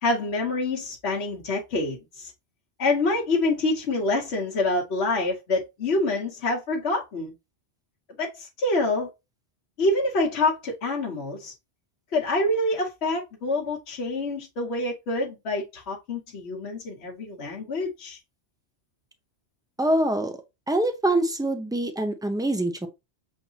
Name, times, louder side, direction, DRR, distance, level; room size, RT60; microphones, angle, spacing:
voice 1, 0.0-2.3 2.8-7.3 8.2-9.1 9.8-11.5 12.1-18.2, left 2 dB, 75° left, 1.2 m, -26 dB
voice 2, 19.8-20.4 20.7-22.9, right 1 dB, 5° right, 0.5 m, -24 dB
6.9 x 2.7 x 2.8 m
omnidirectional pair, 1.1 m